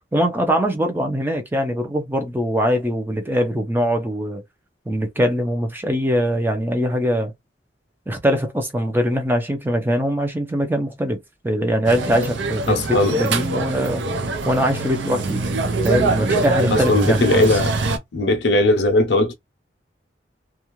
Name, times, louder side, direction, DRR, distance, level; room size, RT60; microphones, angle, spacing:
voice 1, 0.1-4.4 4.9-7.3 8.1-11.2 11.4-14.0 14.4-15.4 15.8-17.5, equal, 10° right, 0.5 m, -22 dB
sound 1, 11.9-18.0, right 3 dB, 80° right, 0.5 m, -23 dB
voice 2, 12.7-13.1 16.7-17.7 18.1-19.3, left 1 dB, 65° left, 0.6 m, -18 dB
2.4 x 2.3 x 3.0 m
head